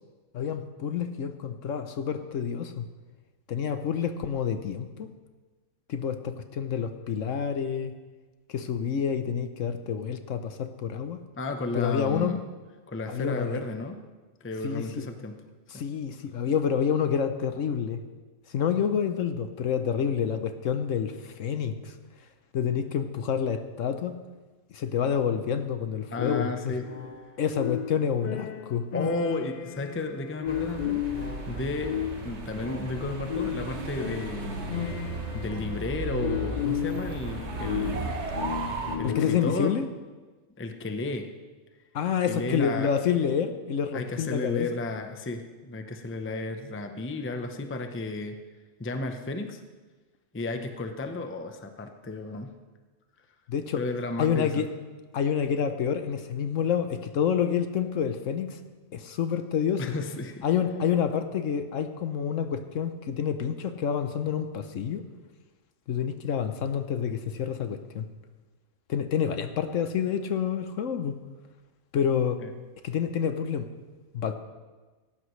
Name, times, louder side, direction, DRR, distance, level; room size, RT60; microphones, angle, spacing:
voice 1, 0.3-2.9 3.5-5.1 5.9-7.9 8.5-11.2 11.7-12.4 13.1-13.6 14.6-15.0 15.7-18.0 18.5-21.9 22.5-24.2 24.7-26.7 27.4-28.9 39.0-39.8 41.9-44.7 53.5-53.8 54.2-54.7 55.1-58.6 58.9-59.8 60.4-65.0 65.9-68.1 68.9-71.2 71.9-72.4 72.8-73.7 74.1-74.3, left 7 dB, 65° left, 9 dB, 1.1 m, -28 dB
voice 2, 11.4-12.5 12.9-14.0 14.4-15.3 26.1-26.9 28.9-31.9 32.2-34.7 35.0-35.1 35.3-38.1 39.0-39.7 40.6-41.3 42.2-42.9 43.2-43.3 43.9-48.4 48.8-49.6 50.3-52.5 53.8-54.6 59.8-60.4 72.4-72.5, left 2 dB, 15° left, 6 dB, 0.6 m, -33 dB
sound 1, 26.2-39.7, left 10 dB, 80° left, 0.4 m, -34 dB
sound 2, 30.5-39.0, right 3 dB, 55° right, 1.4 m, -35 dB
17.5 x 14.5 x 3.2 m, 1.3 s
omnidirectional pair, 1.5 m